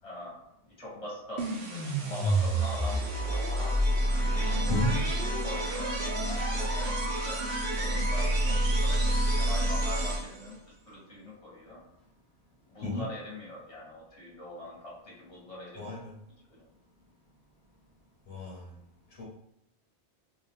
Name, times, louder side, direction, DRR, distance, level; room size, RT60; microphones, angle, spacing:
voice 1, 0.0-3.7 4.3-10.6 10.9-11.8 12.7-16.0 16.5-16.6, left 1 dB, 30° left, -4 dB, 1.4 m, -43 dB
sound 1, 1.4-10.5, right 1 dB, 65° right, 1.1 m, -28 dB
voice 2, 4.6-5.0 12.8-13.1 15.8-16.2 18.3-18.7 19.2-19.3, left 1 dB, 70° left, -3 dB, 1.3 m, -32 dB
3.7 x 2.8 x 3.6 m, 0.78 s
omnidirectional pair, 1.1 m